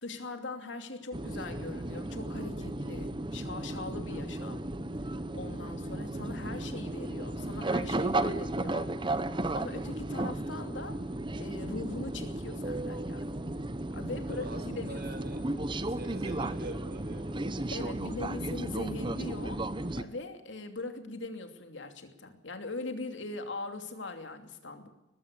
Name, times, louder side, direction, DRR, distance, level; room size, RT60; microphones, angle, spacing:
voice 1, 0.0-4.6 5.3-8.9 9.5-11.0 11.4-13.3 13.9-15.0 17.7-19.6 20.0-24.9, left 2 dB, 75° left, 6 dB, 2.8 m, -41 dB
sound 1, 1.1-20.0, right 2 dB, 25° right, 0.9 m, -34 dB
voice 2, 14.2-15.6 16.0-17.5, right 1 dB, 55° right, 7 dB, 4.6 m, -43 dB
20.5 x 15.5 x 8.5 m, 0.97 s
head